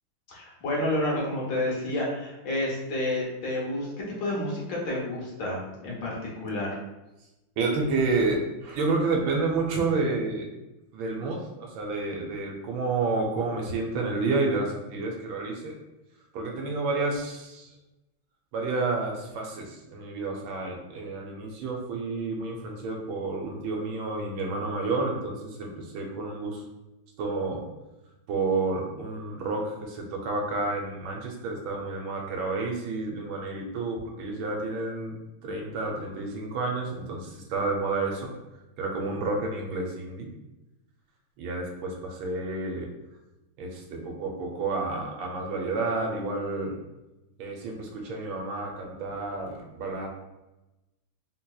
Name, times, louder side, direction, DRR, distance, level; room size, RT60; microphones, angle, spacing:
voice 1, 0.3-3.9 4.2-6.8, left 1 dB, 65° left, -4 dB, 1.5 m, -30 dB
voice 2, 7.6-10.4 10.9-15.7 16.3-17.7 18.5-26.6 27.2-27.6 28.3-35.1 35.4-38.3 38.8-40.3 41.4-42.9 43.6-46.7 47.4-50.1, right 3 dB, 75° right, 0 dB, 1.4 m, -30 dB
3.8 x 2.8 x 2.3 m, 0.99 s
omnidirectional pair, 2.2 m